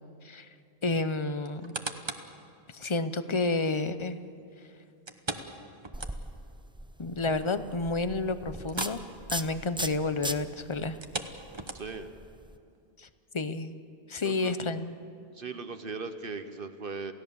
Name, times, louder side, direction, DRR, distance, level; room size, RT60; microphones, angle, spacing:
voice 1, 0.8-1.7 2.7-4.2 7.0-9.0 9.3-11.0 13.0-13.1 13.3-13.8 14.1-15.0, left 3 dB, 30° left, 12 dB, 0.7 m, -30 dB
sound 1, 1.4-2.4 2.9-3.0 5.1-6.5 6.9-7.0 7.4-7.5 8.6-9.1 9.3-9.6 10.9-12.1 12.7-12.8, right 2 dB, 25° right, 1.1 m, -38 dB
sound 2, 5.9-12.6, right 1 dB, 10° right, 0.3 m, -40 dB
voice 2, 11.7-12.1 14.2-14.5 15.3-17.1, right 4 dB, 55° right, 9 dB, 1.1 m, -38 dB
28.5 x 16.5 x 7.0 m, 2.5 s
omnidirectional pair, 1.1 m